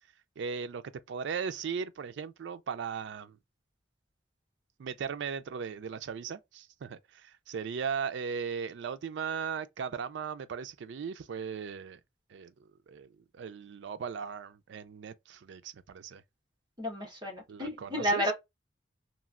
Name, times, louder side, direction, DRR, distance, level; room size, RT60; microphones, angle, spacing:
voice 1, 0.4-0.8 1.1-3.4 4.8-12.0 12.3-16.2 17.5-18.3, right 6 dB, 70° right, 0.3 m, -37 dB
voice 2, 16.8-18.3, equal, 25° right, 1.1 m, -31 dB
3.0 x 2.4 x 2.4 m
head